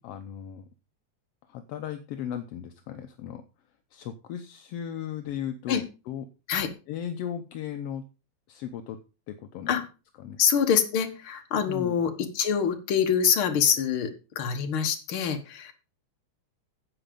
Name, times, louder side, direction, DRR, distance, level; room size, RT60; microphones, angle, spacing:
voice 1, 0.0-0.6 1.5-3.4 3.9-6.2 6.9-8.0 8.5-9.0 9.3-9.7 10.2-10.4 11.7-12.0, left 9 dB, 70° left, 8 dB, 1.6 m, -36 dB
voice 2, 10.4-14.1 14.4-15.7, left 7 dB, 50° left, 6 dB, 2.0 m, -25 dB
10.0 x 8.1 x 5.2 m, 0.32 s
omnidirectional pair, 3.4 m